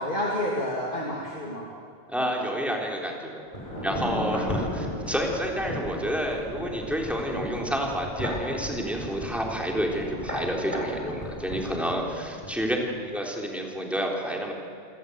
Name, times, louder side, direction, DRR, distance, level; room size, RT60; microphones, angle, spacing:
voice 1, 0.0-1.7 3.5-4.0 12.7-13.0, left 1 dB, 45° left, -3 dB, 2.9 m, -31 dB
voice 2, 2.1-3.4 3.8-12.8 13.1-14.5, equal, ahead, -1 dB, 3.5 m, -29 dB
sound 1, 3.5-12.5 12.8-12.9, left 1 dB, 30° left, 8.1 m, -35 dB
27.0 x 18.0 x 8.1 m, 2.4 s
omnidirectional pair, 1.2 m